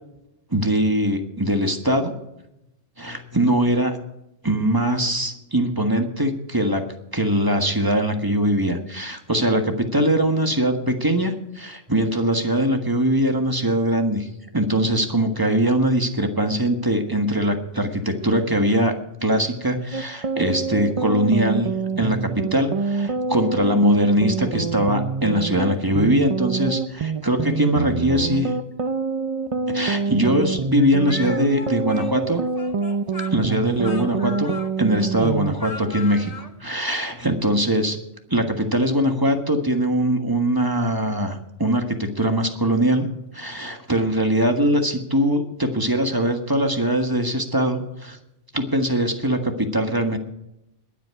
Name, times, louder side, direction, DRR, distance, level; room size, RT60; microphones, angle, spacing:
voice 1, 0.5-2.1 3.0-4.0 4.4-6.8 7.1-14.3 14.5-18.9 19.2-21.7 22.0-28.5 29.7-32.4 33.3-34.5 34.8-36.3 36.6-38.0 38.3-43.1 43.3-48.2 48.5-50.2, equal, 15° right, 5 dB, 1.4 m, -21 dB
sound 1, 19.9-35.5, right 4 dB, 55° right, 0.3 m, -26 dB
Speech, 31.1-36.5, left 3 dB, 30° left, 1.2 m, -38 dB
21.0 x 8.3 x 4.8 m, 0.85 s
omnidirectional pair, 1.3 m